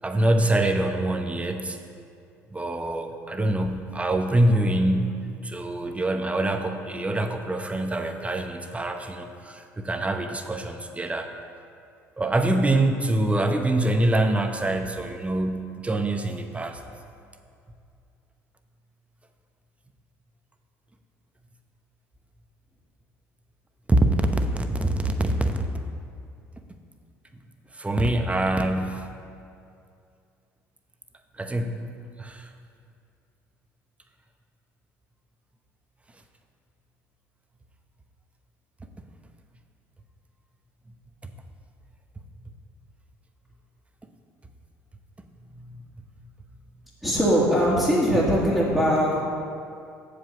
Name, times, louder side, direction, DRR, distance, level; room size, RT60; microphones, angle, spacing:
voice 1, 0.0-1.8 2.5-11.3 12.2-16.8 23.9-25.7 27.7-29.1 31.3-32.5 41.2-41.3 45.5-46.0, right 1 dB, 15° right, 5 dB, 0.8 m, -25 dB
voice 2, 47.0-49.2, equal, ahead, -9 dB, 1.8 m, -21 dB
7.2 x 5.0 x 6.9 m, 2.4 s
hypercardioid pair, 60°, 8 cm